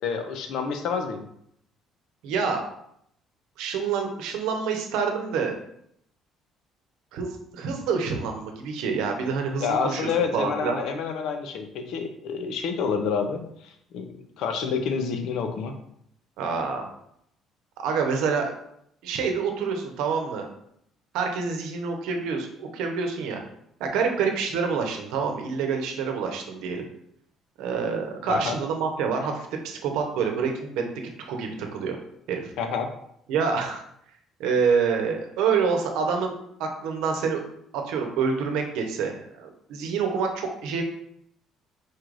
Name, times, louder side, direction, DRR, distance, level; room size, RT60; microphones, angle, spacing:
voice 1, 0.0-1.3 9.6-13.4 13.9-15.8 28.3-28.5 32.6-32.9, left 6 dB, 70° left, 6 dB, 0.7 m, -28 dB
voice 2, 2.2-2.6 3.6-5.6 7.1-10.8 16.4-16.9 17.8-18.5 19.0-20.5 21.1-23.4 23.8-26.8 27.6-30.8 31.3-32.0 32.3-32.5 33.3-33.8 34.4-37.4 37.7-40.8, right 5 dB, 85° right, 3 dB, 0.8 m, -27 dB
4.4 x 2.5 x 4.7 m, 0.72 s
cardioid pair, 125°, 0 cm